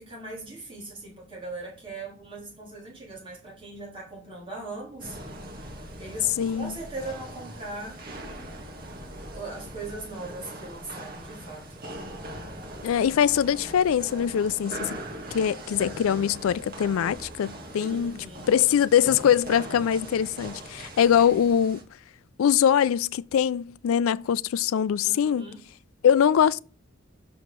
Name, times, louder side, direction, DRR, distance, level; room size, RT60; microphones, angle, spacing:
voice 1, 0.0-5.2 6.0-8.0 9.3-11.9 17.7-18.5 25.0-25.6, right 2 dB, 25° right, 3.4 m, -39 dB
sound 1, 5.0-21.8, right 1 dB, 45° right, 1.6 m, -41 dB
voice 2, 6.4-6.8 12.8-15.0 15.3-21.8 22.4-25.5 26.0-26.6, left 8 dB, 80° left, 0.3 m, -23 dB
6.3 x 4.7 x 6.7 m
head